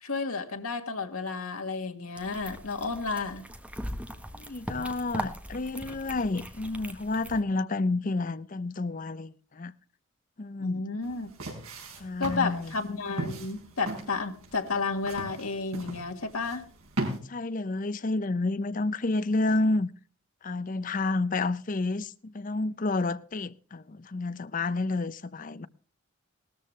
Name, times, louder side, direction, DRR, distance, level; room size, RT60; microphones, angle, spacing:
voice 1, 0.0-3.4 10.6-11.3 12.2-16.6, left 4 dB, 85° left, 1.7 m, -32 dB
sound 1, 2.2-7.4, equal, 5° right, 1.1 m, -40 dB
voice 2, 4.3-9.7 10.4-10.8 12.0-12.7 17.3-19.9 20.4-25.7, left 2 dB, 40° left, 0.5 m, -30 dB
sound 2, 11.0-17.2, right 1 dB, 85° right, 4.6 m, -38 dB
18.0 x 13.5 x 3.2 m
head